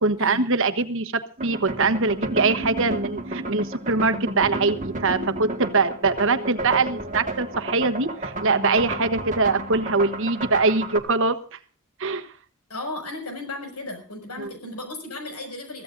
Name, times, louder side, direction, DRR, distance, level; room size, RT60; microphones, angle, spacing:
voice 1, 0.0-11.4 12.0-12.3 14.4-14.5, right 3 dB, 60° right, 10 dB, 1.2 m, -23 dB
sound 1, 1.4-11.0, right 2 dB, 35° right, 1.8 m, -32 dB
voice 2, 12.7-15.8, left 2 dB, 85° left, 6 dB, 6.3 m, -35 dB
22.5 x 15.5 x 2.6 m, 0.40 s
head